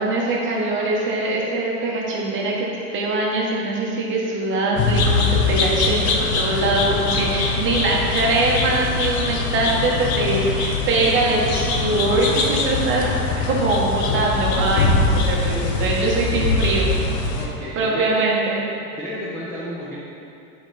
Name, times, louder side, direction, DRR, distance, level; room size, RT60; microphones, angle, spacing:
voice 1, 0.0-2.7 2.9-13.1 13.5-16.9 17.7-18.6, right 2 dB, 25° right, -3 dB, 1.1 m, -22 dB
sound 1, 4.8-17.5, left 3 dB, 45° left, 0.8 m, -22 dB
voice 2, 17.4-18.1 19.0-20.0, equal, 5° left, -9 dB, 0.5 m, -32 dB
7.3 x 4.5 x 3.4 m, 2.6 s
supercardioid pair, 130°, 44 cm